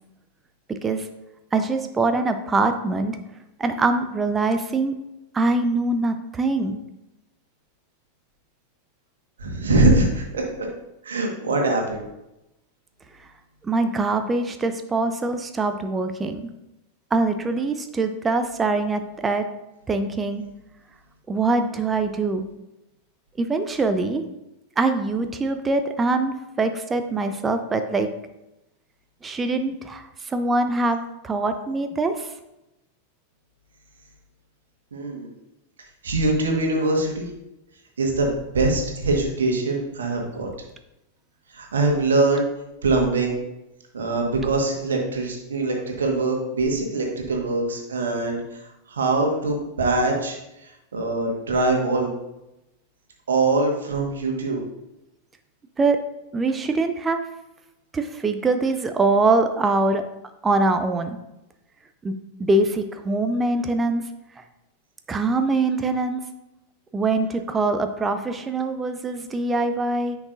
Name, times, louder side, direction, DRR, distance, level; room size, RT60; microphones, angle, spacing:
voice 1, 0.7-1.1 1.5-3.2 3.6-4.9 5.3-6.8 13.2-13.3 13.6-16.5 17.1-19.5 19.9-20.5 21.3-22.5 23.4-24.2 24.8-28.1 29.2-31.0 31.2-32.3 55.8-56.0 56.3-57.2 57.9-60.0 60.4-61.2 62.0-64.0 64.4-64.5 65.1-66.2 66.9-70.2, right 3 dB, 15° right, 8 dB, 0.5 m, -23 dB
voice 2, 9.4-10.7 11.0-12.0 34.9-35.3 36.0-37.3 38.0-40.5 41.5-42.5 42.8-43.4 43.9-52.1 53.3-54.6, right 2 dB, 65° right, 1 dB, 1.6 m, -23 dB
9.7 x 6.0 x 2.6 m, 0.92 s
figure-of-eight pair, 90°, 0 cm